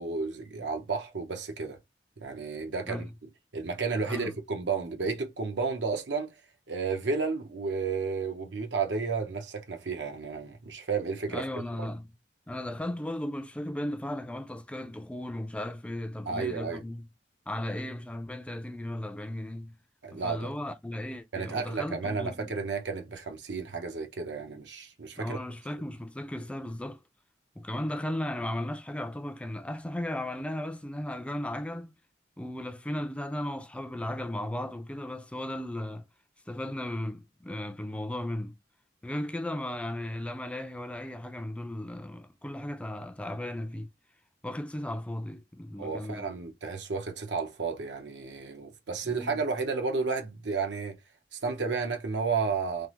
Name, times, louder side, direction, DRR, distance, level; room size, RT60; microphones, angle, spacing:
voice 1, 0.0-1.8 2.2-3.1 3.5-6.3 6.7-11.4 16.3-16.8 20.0-20.5 21.3-25.4 45.8-51.0 51.3-52.9, right 4 dB, 85° right, 0.8 m, -32 dB
voice 2, 4.0-4.4 11.3-12.1 12.5-17.1 17.5-19.8 20.1-22.5 25.2-27.0 27.6-32.0 32.4-36.1 36.5-38.6 39.0-43.9 44.4-46.3 49.0-49.4, left 1 dB, 5° left, 0.3 m, -36 dB
3.3 x 2.0 x 2.9 m
head